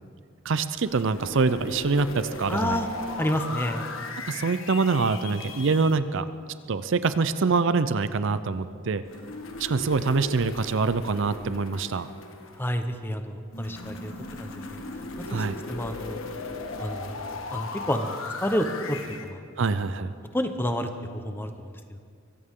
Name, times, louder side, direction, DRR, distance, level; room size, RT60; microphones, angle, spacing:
voice 1, 0.4-2.8 4.3-6.3 6.7-9.0 9.6-12.1 15.3-15.6 19.6-20.1, right 4 dB, 60° right, 13 dB, 0.5 m, -25 dB
sound 1, 0.9-5.9 9.0-12.8 13.5-19.3, left 3 dB, 75° left, 1.3 m, -37 dB
voice 2, 2.5-2.9 3.2-3.9 12.6-14.1 14.4-14.8 15.3-16.2 16.8-17.2 17.5-19.7 20.3-22.0, equal, 10° left, 7 dB, 0.9 m, -30 dB
23.5 x 16.5 x 3.7 m, 2.2 s
head